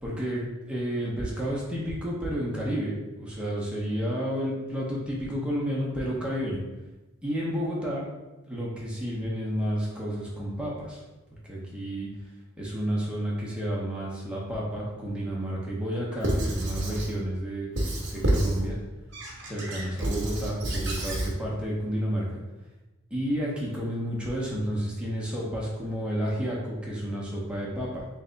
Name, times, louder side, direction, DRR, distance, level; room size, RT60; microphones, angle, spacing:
voice 1, 0.0-6.6 7.2-8.0 8.5-11.0 11.4-12.1 12.6-17.7 18.1-18.8 19.5-22.4 23.1-28.0, equal, 5° right, -5 dB, 0.8 m, -31 dB
Squeak / Writing, 16.2-17.1 17.8-18.6 19.1-21.3, right 1 dB, 55° right, 0.9 m, -29 dB
3.3 x 3.3 x 3.9 m, 1.1 s
head